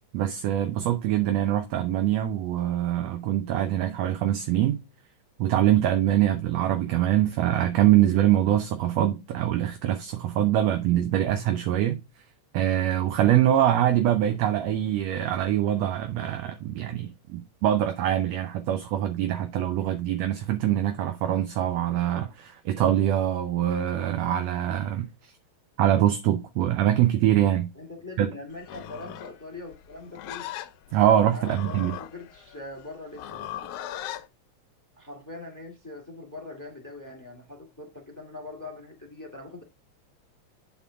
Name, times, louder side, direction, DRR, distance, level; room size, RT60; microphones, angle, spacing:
voice 1, 0.1-4.8 5.4-12.0 12.5-25.3 25.8-27.7 28.2-28.3 30.9-31.9, right 12 dB, 70° right, 1.8 m, -24 dB
voice 2, 27.7-30.5 31.3-33.7 35.0-39.6, left 2 dB, 10° left, 1.3 m, -42 dB
Livestock farm animals working animals, 28.6-34.3, left 11 dB, 85° left, 2.1 m, -39 dB
9.3 x 4.2 x 3.6 m
omnidirectional pair, 3.4 m